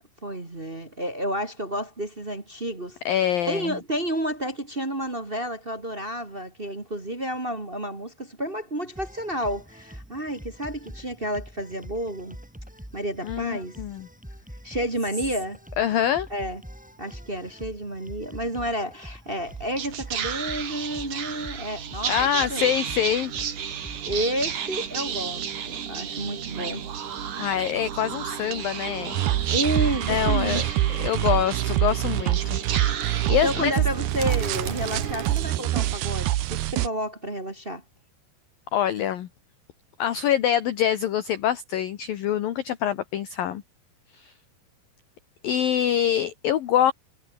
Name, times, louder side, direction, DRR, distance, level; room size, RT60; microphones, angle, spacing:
voice 1, 0.2-12.4 12.9-13.8 14.6-15.6 16.3-16.6 17.0-22.7 24.0-26.9 29.5-30.8 33.3-37.8, right 1 dB, 25° right, 1.1 m, -31 dB
voice 2, 3.0-3.7 13.2-14.1 15.8-16.3 22.1-23.3 27.4-29.2 30.1-30.6 30.9-32.6 33.3-33.7 38.7-39.3 40.0-43.6 44.1-44.3 45.4-46.9, left 10 dB, 60° left, 2.8 m, -25 dB
sound 1, 8.9-24.3, equal, ahead, 4.0 m, -44 dB
Whispering, 19.4-36.0, right 8 dB, 45° right, 3.3 m, -32 dB
sound 2, 29.1-36.9, right 14 dB, 70° right, 3.0 m, -25 dB
omnidirectional pair, 5.3 m